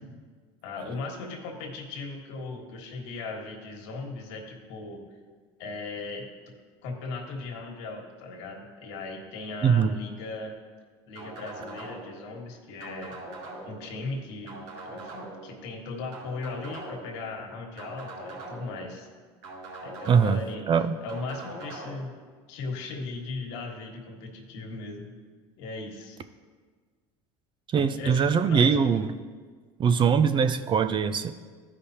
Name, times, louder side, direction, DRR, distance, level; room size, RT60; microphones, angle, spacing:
voice 1, 0.6-5.0 5.6-6.3 6.8-10.6 11.1-13.2 13.6-19.1 19.8-20.6 21.0-22.1 22.5-25.1 25.6-26.2 27.8-28.7, left 3 dB, 75° left, 2 dB, 1.5 m, -37 dB
voice 2, 9.6-9.9 20.1-20.4 20.7-21.0 27.7-29.1 29.8-31.3, right 6 dB, 35° right, 11 dB, 0.5 m, -22 dB
sound 1, 11.2-12.2 12.8-13.9 14.5-15.5 16.1-17.2 17.8-18.8 19.4-20.5 21.1-21.9, right 2 dB, 75° right, 2.5 m, -41 dB
13.0 x 5.1 x 2.8 m, 1.5 s
hypercardioid pair, 85°, 14 cm